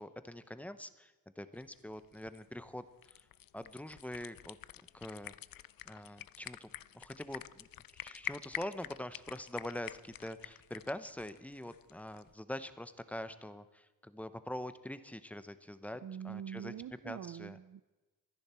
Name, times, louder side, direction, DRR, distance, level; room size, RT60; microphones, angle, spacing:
voice 1, 0.0-3.2 3.5-4.6 4.9-5.4 5.8-6.7 6.9-7.7 8.0-16.7 17.0-17.6, left 1 dB, 5° left, 12 dB, 0.8 m, -44 dB
sound 1, 1.5-12.3, left 12 dB, 70° left, 0.5 m, -48 dB
voice 2, 16.0-17.8, right 9 dB, 60° right, 14 dB, 0.5 m, -44 dB
25.5 x 10.5 x 4.4 m, 1.1 s
wide cardioid pair, 105°, 35 cm